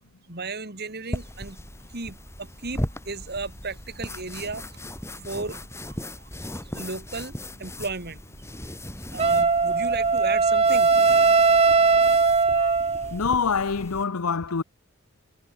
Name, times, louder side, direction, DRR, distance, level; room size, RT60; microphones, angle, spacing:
voice 1, 0.3-1.6 1.9-6.3 6.6-8.5 9.1-11.0, right 3 dB, 50° right, 2.9 m, -35 dB
sound 1, 1.1-14.0, left 1 dB, 10° left, 7.2 m, -38 dB
Wind instrument woodwind instrument, 9.2-13.2, right 4 dB, 25° right, 0.8 m, -19 dB
voice 2, 13.1-14.6, left 5 dB, 90° left, 0.9 m, -25 dB
head